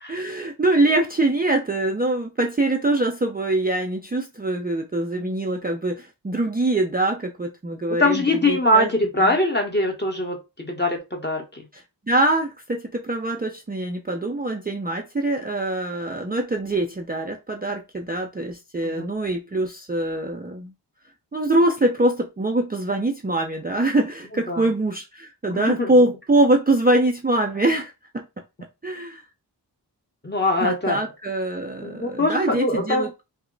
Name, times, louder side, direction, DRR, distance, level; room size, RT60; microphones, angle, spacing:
voice 1, 0.1-8.9 9.2-9.4 11.7-11.8 12.1-20.7 21.3-28.3 28.8-29.2 30.6-33.2, right 2 dB, 20° right, 0.4 m, -23 dB
voice 2, 7.9-11.7 18.8-19.1 24.5-24.7 25.5-25.9 30.2-31.0 31.8-33.1, left 1 dB, 25° left, 1.1 m, -23 dB
2.9 x 2.1 x 3.8 m
wide cardioid pair, 55°, 42 cm